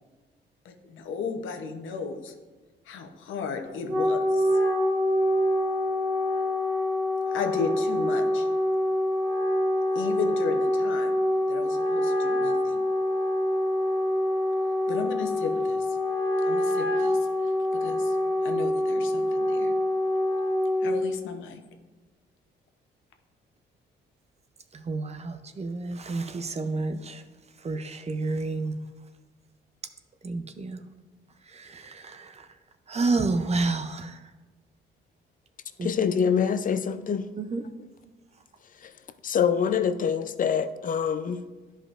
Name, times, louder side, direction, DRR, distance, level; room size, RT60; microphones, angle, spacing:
voice 1, 0.6-2.3 2.9-4.4 7.3-8.5 9.9-11.1 11.5-12.8 14.9-16.0 16.5-18.2 18.4-19.7 20.8-21.6, left 5 dB, 80° left, 0.8 m, -35 dB
Wind instrument woodwind instrument, 3.7-21.1, left 1 dB, 70° right, 2.0 m, -25 dB
voice 2, 24.7-27.3 27.6-28.7 30.2-30.8 31.4-32.5 32.9-34.3 35.8-35.9 37.4-37.6, right 3 dB, 35° right, 0.6 m, -30 dB
voice 3, 35.8-37.3 38.8-38.9 39.2-41.4, left 7 dB, 45° left, 0.5 m, -25 dB
11.0 x 5.1 x 2.5 m
cardioid pair, 90°, 20 cm